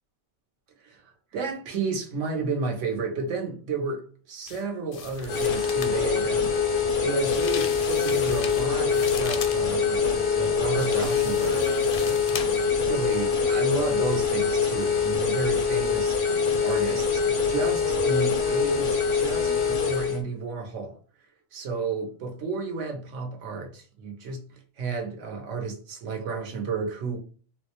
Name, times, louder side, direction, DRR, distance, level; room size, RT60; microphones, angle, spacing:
voice 1, 0.8-6.5 7.0-12.6 12.9-16.3 16.6-21.0 21.5-24.4 24.8-27.2, right 4 dB, 80° right, 1.2 m, -32 dB
sound 1, 4.5-4.6 4.9-6.0 7.2-9.6 10.8-12.7 13.0-13.1, left 7 dB, 60° left, 0.6 m, -37 dB
sound 2, 5.3-20.2, left 5 dB, 85° left, 1.1 m, -24 dB
4.0 x 2.1 x 2.9 m
omnidirectional pair, 1.3 m